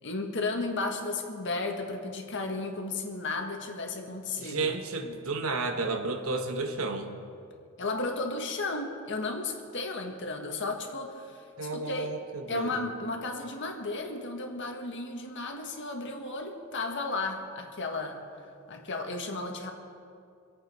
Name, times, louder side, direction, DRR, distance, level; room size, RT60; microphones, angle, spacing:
voice 1, 0.0-4.7 7.8-11.4 11.7-12.1 12.5-18.2 18.7-19.7, left 3 dB, 55° left, 3 dB, 1.7 m, -34 dB
voice 2, 4.4-7.1 11.6-12.9, right 3 dB, 70° right, 5 dB, 1.3 m, -32 dB
25.5 x 8.5 x 5.4 m, 2.4 s
head